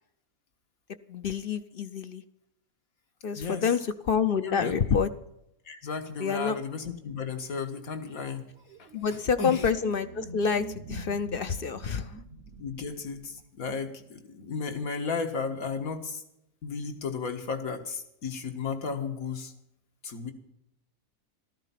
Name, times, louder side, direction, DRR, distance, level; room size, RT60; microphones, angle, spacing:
voice 1, 1.1-2.2 3.2-3.8 4.0-5.1 6.2-6.6 8.9-12.1, left 6 dB, 50° left, 11 dB, 0.7 m, -27 dB
voice 2, 3.3-3.7 4.4-4.8 5.7-8.5 8.8-8.9 9.4-9.7 12.6-16.2 16.6-19.5 20.0-20.3, left 5 dB, 75° left, 6 dB, 2.0 m, -34 dB
sound 1, 8.6-13.6, right 3 dB, 55° right, 1.0 m, -45 dB
14.0 x 13.5 x 5.8 m, 0.81 s
omnidirectional pair, 1.5 m